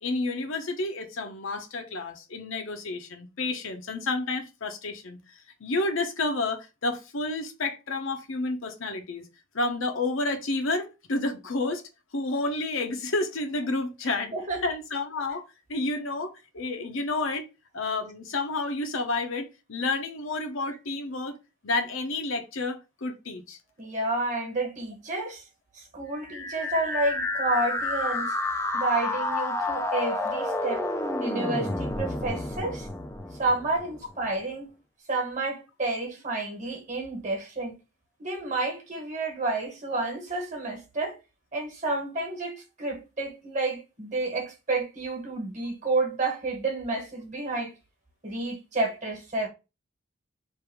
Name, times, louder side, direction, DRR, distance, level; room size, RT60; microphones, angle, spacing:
voice 1, 0.0-5.2 5.6-9.3 9.5-11.8 12.1-14.3 14.6-15.4 15.7-17.5 17.7-21.3 21.6-23.6, left 2 dB, 65° left, 0.8 m, -30 dB
voice 2, 14.3-14.7 23.8-25.4 25.7-28.3 28.7-30.8 31.2-32.9 33.4-34.7 35.1-37.8 38.2-41.2 41.5-47.7 48.2-49.5, right 2 dB, 35° right, 1.3 m, -30 dB
sound 1, 26.2-34.1, left 2 dB, 10° left, 0.4 m, -30 dB
3.3 x 2.6 x 4.6 m
head